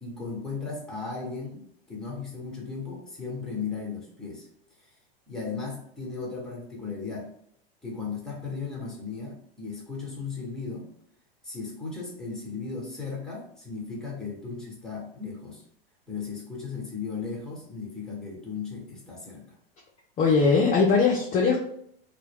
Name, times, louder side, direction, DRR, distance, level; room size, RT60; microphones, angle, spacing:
voice 1, 0.0-4.5 5.3-7.3 7.8-10.9 11.4-15.6 16.1-19.5, left 4 dB, ahead, -3 dB, 1.0 m, -36 dB
voice 2, 20.2-21.6, left 4 dB, 25° left, -2 dB, 0.5 m, -20 dB
2.1 x 2.1 x 3.3 m, 0.69 s
hypercardioid pair, 100°, 29 cm